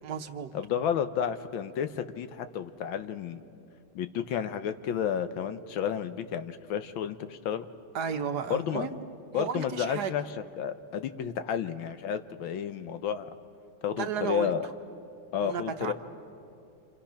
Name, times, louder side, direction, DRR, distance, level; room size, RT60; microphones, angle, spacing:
voice 1, 0.0-0.5 7.9-9.0 9.3-10.1 13.9-14.5 15.4-15.9, right 7 dB, 55° right, 7 dB, 1.5 m, -33 dB
voice 2, 0.5-3.4 3.9-7.6 8.5-8.9 9.3-10.2 10.6-13.3 13.8-14.7 15.3-15.9, left 8 dB, 75° left, 10 dB, 1.6 m, -31 dB
29.0 x 28.0 x 5.8 m, 2.6 s
omnidirectional pair, 2.2 m